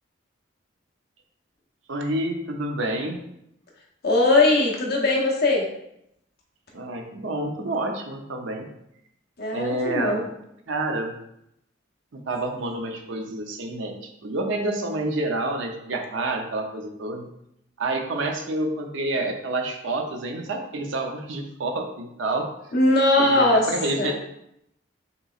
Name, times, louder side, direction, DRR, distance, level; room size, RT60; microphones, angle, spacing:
voice 1, 1.9-3.2 6.7-8.7 9.5-10.3 10.7-11.2 12.1-14.0 14.2-17.3 17.8-22.5 23.2-24.1, right 2 dB, 75° right, 3 dB, 0.6 m, -28 dB
voice 2, 4.0-5.6 9.4-10.2 22.7-23.7 24.0-24.1, left 2 dB, 50° left, -2 dB, 0.9 m, -20 dB
5.2 x 3.0 x 2.4 m, 0.78 s
head